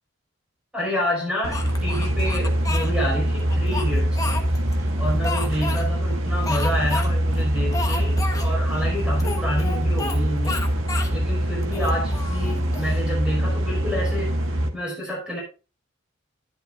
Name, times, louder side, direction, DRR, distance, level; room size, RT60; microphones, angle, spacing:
voice 1, 0.7-4.3 5.0-10.7 11.1-14.4 14.7-15.4, equal, 5° right, -4 dB, 5.0 m, -29 dB
sound 1, 1.4-14.7, equal, 80° right, 1.7 m, -23 dB
Speech, 1.5-2.9 3.5-4.8 5.2-5.8 6.4-7.1 7.3-7.4 7.7-8.5 9.2-10.2 10.4-11.1 11.6-13.0, left 3 dB, 15° left, 1.2 m, -31 dB
11.5 x 11.0 x 2.5 m, 0.33 s
head